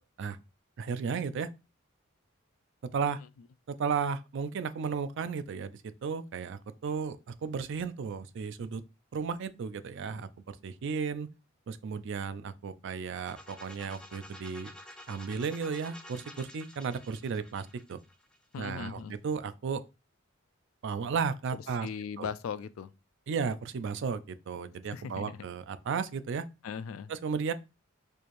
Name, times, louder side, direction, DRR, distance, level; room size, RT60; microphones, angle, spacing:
voice 1, 0.8-1.5 2.9-3.2 3.7-8.8 9.1-11.3 11.7-14.7 15.1-18.0 18.6-19.8 20.8-21.9 22.2-22.3 23.3-26.4 27.1-27.5, right 5 dB, 60° right, 0.4 m, -34 dB
sound 1, 13.1-18.9, left 1 dB, 5° left, 0.6 m, -50 dB
voice 2, 18.5-19.2 21.5-22.9 24.9-25.4 26.6-27.1, left 6 dB, 85° left, 0.3 m, -39 dB
4.4 x 3.1 x 2.5 m
head